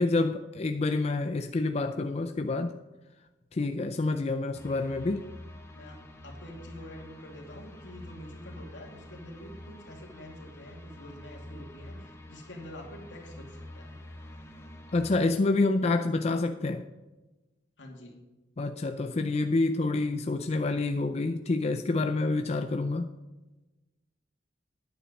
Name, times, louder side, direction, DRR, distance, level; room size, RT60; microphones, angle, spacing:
voice 1, 0.0-2.7 3.5-5.2 14.9-16.8 18.6-23.1, left 3 dB, 35° left, 7 dB, 0.4 m, -28 dB
sound 1, 4.5-15.2, left 1 dB, 15° left, 1.1 m, -47 dB
voice 2, 5.7-14.0 17.8-18.2, left 1 dB, 80° left, 1 dB, 2.4 m, -47 dB
10.0 x 8.9 x 5.2 m, 1.1 s
head